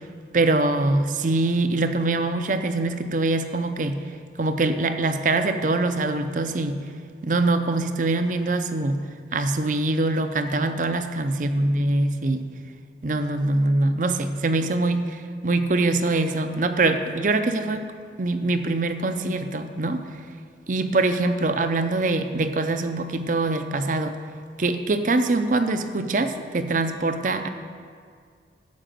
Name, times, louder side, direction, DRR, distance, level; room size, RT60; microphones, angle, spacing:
voice 1, 0.3-4.0 4.4-6.8 7.2-9.0 9.3-12.5 13.0-17.8 18.2-20.0 20.7-24.1 24.6-27.5, right 2 dB, 45° right, 9 dB, 0.6 m, -23 dB
11.5 x 5.0 x 7.6 m, 2.1 s
head